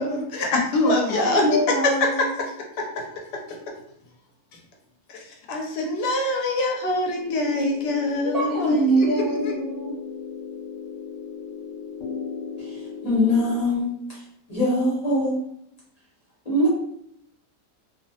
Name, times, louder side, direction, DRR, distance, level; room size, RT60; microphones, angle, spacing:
voice 1, 0.0-1.6 2.2-2.3 2.8-3.0 3.3-3.4 5.1-9.5, left 2 dB, 80° left, 1 dB, 1.2 m, -25 dB
voice 2, 0.8-2.4 8.2-10.0, right 1 dB, 25° right, -8 dB, 1.2 m, -24 dB
sound 1, 7.0-13.6, left 6 dB, 60° left, 1.2 m, -36 dB
voice 3, 13.0-13.9 14.5-15.4 16.4-16.7, left 1 dB, 30° left, -7 dB, 0.8 m, -21 dB
2.9 x 2.1 x 2.7 m, 0.74 s
omnidirectional pair, 1.8 m